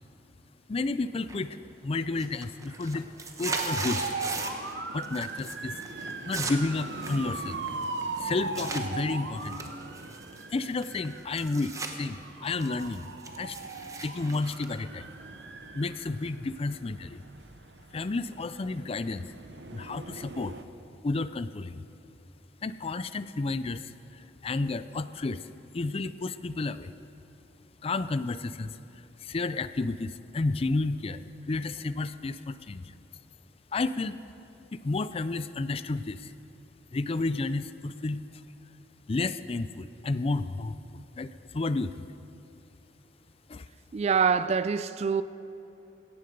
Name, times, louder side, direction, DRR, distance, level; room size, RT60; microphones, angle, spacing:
voice 1, 0.7-1.6 1.8-3.1 3.4-4.1 4.9-5.8 6.3-7.6 8.2-9.6 10.5-13.1 13.4-13.6 14.0-15.1 15.7-17.2 17.9-19.3 19.7-20.6 21.0-21.8 22.6-25.4 25.7-26.9 27.8-28.8 29.2-31.2 31.5-32.9 33.7-34.2 34.7-36.3 36.9-38.2 39.1-42.0 43.5-43.6, left 3 dB, 35° left, 0.4 m, -31 dB
sound 1, 1.3-1.7 2.0-4.7 5.0-5.5 5.8-8.8 9.4-11.9 12.3-15.5, right 3 dB, 20° right, 1.0 m, -38 dB
sound 2, 3.5-20.6, right 3 dB, 80° right, 0.9 m, -39 dB
voice 2, 43.9-45.2, right 6 dB, 35° right, 0.3 m, -25 dB
16.5 x 14.5 x 5.3 m
head